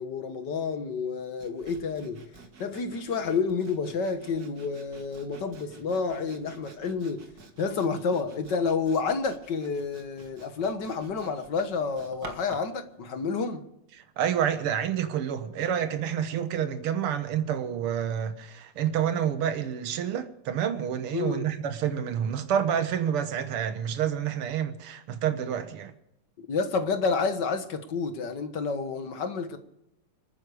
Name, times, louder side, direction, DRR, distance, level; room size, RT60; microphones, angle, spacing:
voice 1, 0.0-2.2 2.6-7.3 7.6-13.6 21.1-21.5 26.5-29.6, left 5 dB, 55° left, 1.9 m, -29 dB
Sawing, 1.4-12.8, right 3 dB, 45° right, 2.1 m, -50 dB
voice 2, 14.0-25.9, right 9 dB, 80° right, 2.1 m, -28 dB
27.0 x 9.7 x 4.9 m
omnidirectional pair, 2.4 m